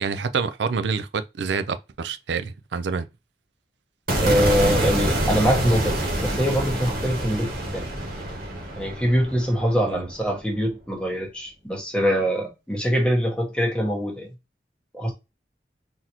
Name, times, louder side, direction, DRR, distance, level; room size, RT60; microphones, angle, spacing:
voice 1, 0.0-3.1 9.9-10.1, right 5 dB, 80° right, 0.5 m, -27 dB
sound 1, 4.1-10.3, right 1 dB, 55° right, 1.4 m, -26 dB
voice 2, 4.2-7.8 8.8-14.3 14.9-15.1, equal, 5° left, 1.3 m, -23 dB
4.0 x 2.9 x 2.8 m
head